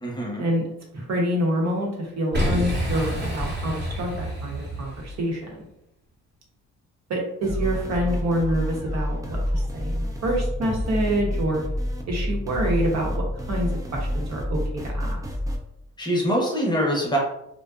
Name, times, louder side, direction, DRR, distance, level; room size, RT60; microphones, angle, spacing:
voice 1, 0.0-0.4 16.0-17.2, equal, 15° left, -2 dB, 0.8 m, -24 dB
voice 2, 0.9-5.7 7.1-11.6 12.1-15.2, equal, 60° right, -1 dB, 0.9 m, -27 dB
Boom, 2.3-5.3, equal, 35° right, 0.9 m, -28 dB
sound 1, 7.4-15.6, equal, 10° right, 0.4 m, -28 dB
2.5 x 2.2 x 2.3 m, 0.83 s
cardioid pair, 90°, 30 cm